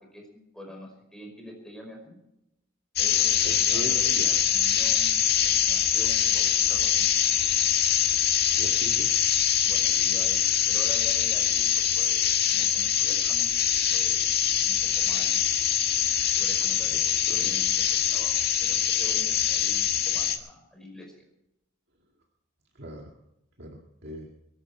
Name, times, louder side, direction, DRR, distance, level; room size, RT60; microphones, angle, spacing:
voice 1, 0.1-2.2 3.0-7.1 9.6-13.5 13.9-14.2 14.6-15.5 16.3-21.2, equal, 5° left, 1 dB, 5.3 m, -45 dB
sound 1, 3.0-20.4, left 9 dB, 50° left, 1.7 m, -24 dB
voice 2, 3.4-4.3 8.5-9.1 16.9-17.0 17.3-17.5 22.8-23.1 23.6-24.3, equal, 55° right, 1 dB, 2.1 m, -39 dB
23.0 x 11.5 x 4.5 m, 0.85 s
head